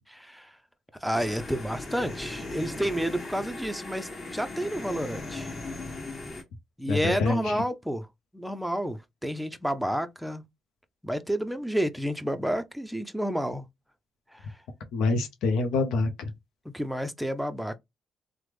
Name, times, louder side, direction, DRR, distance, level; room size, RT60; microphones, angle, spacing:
voice 1, 0.1-0.6 1.0-5.5 6.8-8.1 8.3-10.4 11.0-13.7 14.3-14.5 16.7-17.8, equal, ahead, 0.4 m, -30 dB
sound 1, 1.1-6.4, left 2 dB, 40° left, 1.3 m, -38 dB
voice 2, 6.9-7.6 14.9-16.3, left 3 dB, 85° left, 0.5 m, -26 dB
3.3 x 2.0 x 3.0 m
cardioid pair, 90°, 0 cm